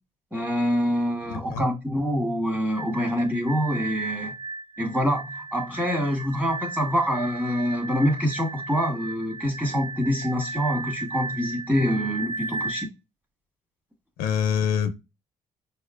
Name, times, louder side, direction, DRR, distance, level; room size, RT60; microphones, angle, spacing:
voice 1, 0.3-4.3 4.8-12.9, equal, 10° right, 1.5 m, -25 dB
voice 2, 1.3-1.6 14.2-14.9, left 8 dB, 90° left, 0.6 m, -25 dB
sound 1, 2.7-12.9, right 4 dB, 40° right, 1.0 m, -35 dB
5.0 x 2.1 x 2.4 m
supercardioid pair, 70°, 15 cm